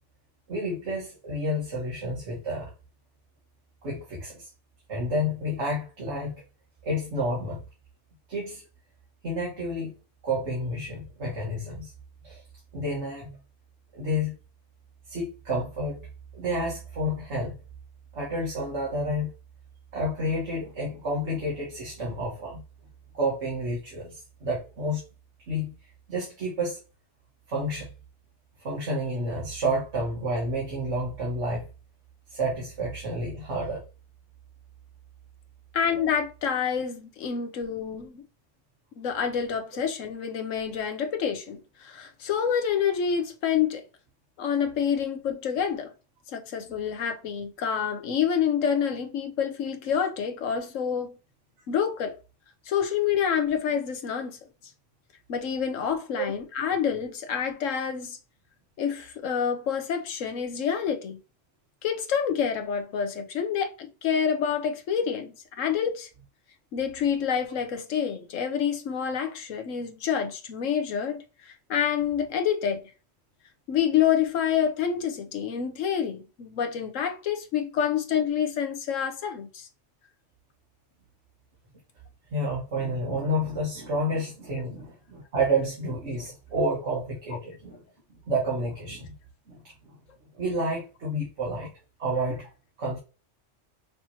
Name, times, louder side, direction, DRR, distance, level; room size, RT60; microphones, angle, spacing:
voice 1, 0.5-2.7 3.8-4.5 4.9-6.3 6.8-7.6 8.3-8.6 9.2-9.9 10.2-11.9 12.2-12.4 12.7-13.4 13.9-14.3 15.1-16.1 16.3-17.6 18.1-19.3 19.9-22.6 23.1-25.0 25.5-25.7 26.1-26.8 27.5-27.9 28.6-31.6 32.3-33.8 56.2-56.3 82.3-87.8 88.3-89.1 89.5-90.0 90.3-91.7 92.0-92.5 92.8-93.0, equal, 65° right, 1.7 m, -30 dB
voice 2, 35.7-38.2 39.0-43.8 44.4-45.9 46.3-51.2 51.7-52.2 52.7-54.4 55.3-58.2 58.8-61.2 61.8-66.1 66.7-72.9 73.7-79.7 87.3-87.4, left 8 dB, 90° left, 1.2 m, -27 dB
5.8 x 3.0 x 2.8 m
omnidirectional pair, 1.3 m